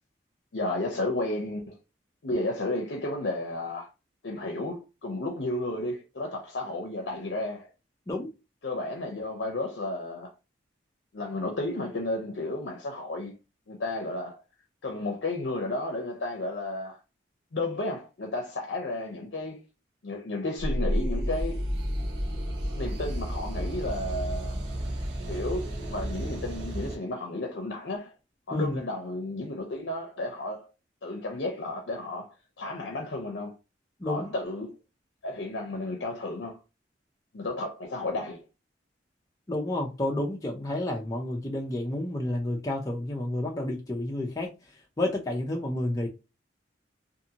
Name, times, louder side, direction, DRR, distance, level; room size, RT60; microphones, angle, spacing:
voice 1, 0.5-1.8 2.2-3.9 4.2-7.7 8.6-10.3 11.1-13.3 13.7-14.4 14.8-17.0 17.5-19.6 20.0-21.7 22.7-24.6 25.3-28.1 28.5-30.7 31.0-33.5 34.0-34.7 35.2-36.6 37.3-38.4, left 2 dB, 70° left, 0.6 m, -33 dB
sound 1, 20.6-26.9, equal, 65° right, 0.8 m, -31 dB
voice 2, 34.0-34.3 39.5-44.5 45.0-46.1, left 1 dB, 20° left, 0.5 m, -30 dB
2.6 x 2.5 x 2.7 m
head